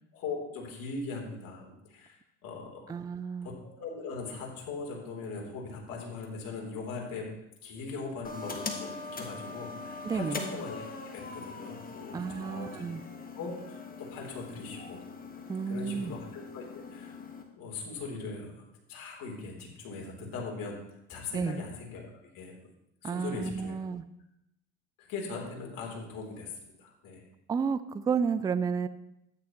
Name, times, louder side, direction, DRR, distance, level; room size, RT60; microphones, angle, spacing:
voice 1, 0.1-2.2 2.4-2.9 3.4-7.3 7.6-10.8 11.1-12.9 13.4-15.0 15.7-16.7 16.9-17.2 17.6-18.5 18.9-20.8 21.1-22.5 23.0-23.8 25.0-27.2, left 4 dB, 55° left, -1 dB, 3.5 m, -40 dB
voice 2, 2.9-3.5 10.0-10.4 12.1-13.0 15.5-16.2 21.3-21.6 23.0-24.0 27.5-28.9, right 6 dB, 10° right, 14 dB, 0.3 m, -31 dB
sound 1, 8.2-17.4, left 4 dB, 20° left, 1.5 m, -42 dB
12.5 x 9.3 x 3.0 m, 0.84 s
hypercardioid pair, 80°, 41 cm